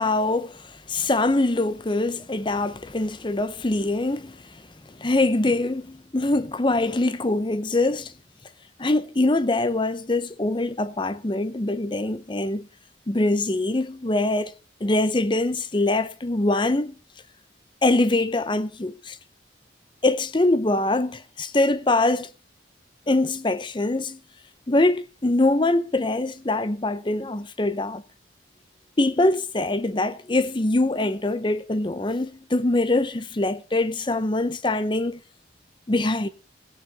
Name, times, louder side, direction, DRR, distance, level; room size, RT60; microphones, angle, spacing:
voice 1, 0.0-4.6 4.9-8.1 8.8-12.7 13.1-14.5 14.8-16.9 17.8-19.2 20.0-22.3 23.1-24.2 24.7-28.0 29.0-35.2 35.9-36.3, left 2 dB, 25° left, 0.6 m, -23 dB
17.0 x 9.9 x 3.4 m
head